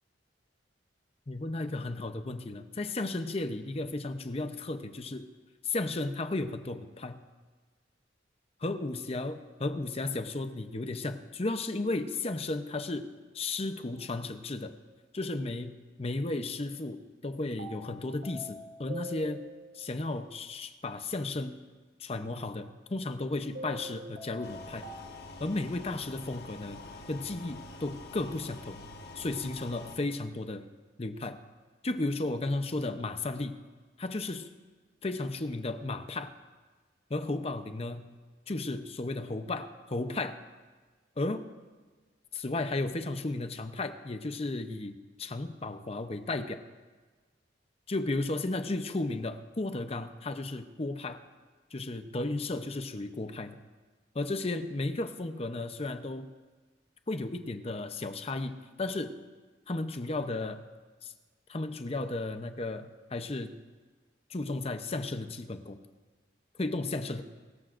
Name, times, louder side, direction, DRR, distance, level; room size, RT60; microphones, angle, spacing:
voice 1, 1.3-5.2 5.6-7.2 8.6-14.7 15.1-19.4 19.7-21.6 22.0-24.8 25.4-26.8 27.1-28.8 29.2-30.7 31.0-31.4 31.8-33.6 34.0-34.5 35.0-36.3 37.1-38.1 38.5-40.4 41.2-41.5 42.3-46.6 47.9-51.2 51.7-53.6 54.1-56.3 57.1-59.2 59.7-60.6 61.0-61.1 61.5-63.6 64.3-65.8 66.6-67.2, left 2 dB, 35° left, 9 dB, 0.7 m, -34 dB
sound 1, 14.0-14.1 17.6-19.9 23.6-25.6, equal, 75° right, 1.9 m, -44 dB
sound 2, 24.4-30.0, left 2 dB, 60° left, 1.3 m, -46 dB
23.5 x 13.5 x 2.6 m, 1.4 s
head